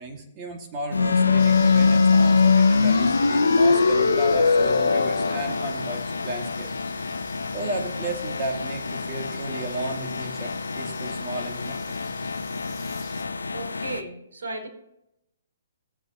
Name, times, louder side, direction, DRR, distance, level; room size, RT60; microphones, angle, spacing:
voice 1, 0.0-11.8, right 2 dB, 30° right, 2 dB, 2.4 m, -34 dB
sound 1, 0.9-14.0, left 4 dB, 85° left, 0.7 m, -23 dB
sound 2, 1.4-13.2, left 9 dB, 30° left, 2.6 m, -46 dB
voice 2, 13.5-14.7, right 2 dB, 65° right, 1 dB, 3.6 m, -35 dB
16.0 x 8.0 x 3.1 m, 0.83 s
hypercardioid pair, 135°, 0 cm